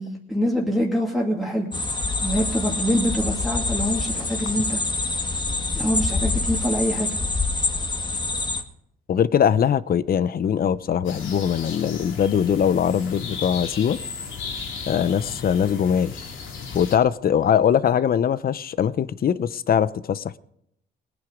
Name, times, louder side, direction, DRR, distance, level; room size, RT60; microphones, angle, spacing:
voice 1, 0.0-1.7 2.2-4.8 5.7-7.1, equal, ahead, 2.4 m, -25 dB
sound 1, 1.7-8.6, left 3 dB, 20° left, 1.7 m, -26 dB
voice 2, 9.1-14.0 14.9-16.2 16.7-20.4, left 8 dB, 50° left, 0.7 m, -21 dB
sound 2, 11.0-17.0, left 5 dB, 80° left, 2.8 m, -35 dB
20.0 x 9.6 x 5.1 m
cardioid pair, 90°, 20 cm